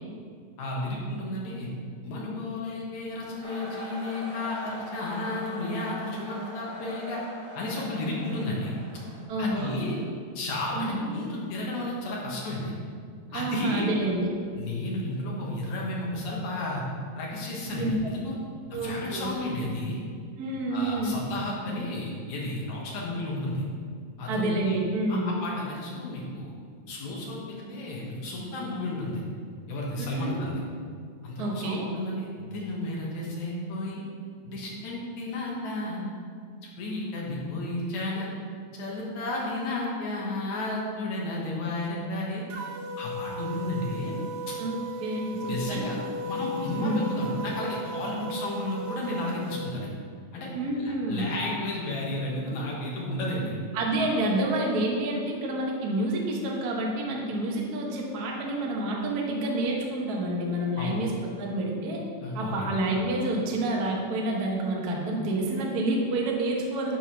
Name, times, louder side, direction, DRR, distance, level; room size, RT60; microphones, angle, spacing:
voice 1, 0.6-1.7 2.0-7.2 7.5-8.7 9.4-10.0 10.4-12.7 13.3-13.9 14.6-16.8 17.2-18.4 18.7-20.0 20.7-23.6 24.2-24.8 25.1-26.5 26.9-29.2 29.7-30.6 31.2-34.0 34.4-36.0 36.8-38.3 38.7-42.4 43.0-44.1 44.5-44.6 45.3-46.0 46.3-49.9 50.3-50.5 50.8-53.5 60.8-61.0 62.2-62.7, left 2 dB, 80° left, -3 dB, 2.7 m, -32 dB
sound 1, 3.4-9.2, right 1 dB, 30° right, 1.8 m, -42 dB
voice 2, 9.3-9.8 10.7-11.1 13.3-14.3 17.6-17.9 18.7-19.3 20.4-21.3 24.3-25.3 30.0-30.3 31.4-31.9 44.6-45.8 46.8-47.1 50.5-51.3 53.7-62.0 62.3-67.0, right 1 dB, 55° right, -1 dB, 1.0 m, -28 dB
sound 2, 42.5-49.7, equal, 85° right, 1.2 m, -36 dB
9.8 x 3.6 x 5.9 m, 2.1 s
omnidirectional pair, 3.3 m